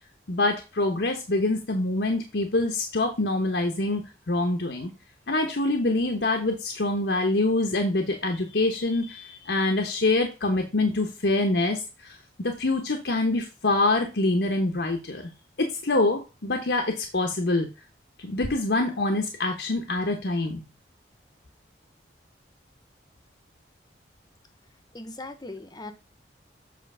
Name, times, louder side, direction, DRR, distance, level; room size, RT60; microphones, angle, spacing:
voice 1, 0.3-4.9 5.3-15.3 15.6-17.7 18.2-20.6, left 2 dB, 75° left, 3 dB, 0.9 m, -25 dB
voice 2, 24.9-25.9, left 2 dB, 20° left, 9 dB, 0.8 m, -39 dB
7.7 x 3.1 x 5.5 m, 0.28 s
head